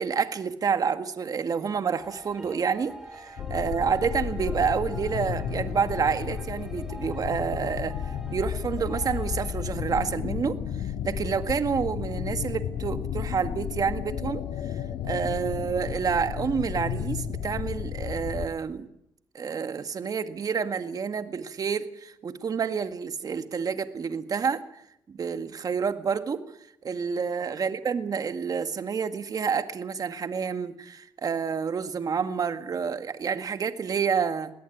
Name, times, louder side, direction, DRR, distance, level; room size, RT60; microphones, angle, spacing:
voice 1, 0.0-10.6 11.0-14.4 14.7-18.9 19.3-24.8 25.1-26.4 26.8-34.5, right 6 dB, 45° right, 9 dB, 1.9 m, -29 dB
sound 1, 2.0-10.2, right 1 dB, 5° right, 4.4 m, -45 dB
sound 2, 3.4-18.5, left 9 dB, 80° left, 1.7 m, -33 dB
22.0 x 17.5 x 9.3 m, 0.78 s
cardioid pair, 85°, 9 cm